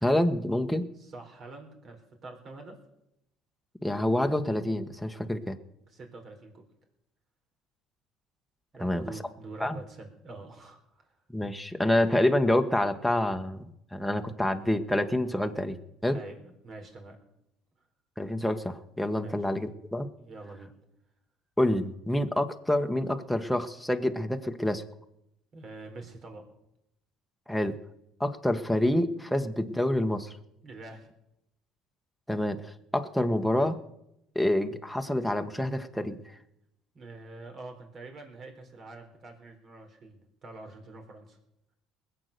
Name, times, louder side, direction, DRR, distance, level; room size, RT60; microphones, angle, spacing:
voice 1, 0.0-0.8 3.8-5.6 8.8-9.1 9.6-9.8 11.3-13.6 13.9-16.2 18.2-20.1 21.6-24.8 27.5-27.8 28.2-30.3 32.3-33.8 34.3-36.2, left 1 dB, ahead, 5 dB, 1.3 m, -27 dB
voice 2, 1.0-2.8 5.9-6.7 8.7-11.1 16.1-17.2 19.2-19.4 20.2-20.7 25.5-26.5 30.6-31.1 36.9-41.4, right 2 dB, 50° right, 3 dB, 4.2 m, -46 dB
20.5 x 7.9 x 6.8 m, 0.83 s
supercardioid pair, 75°, 0 cm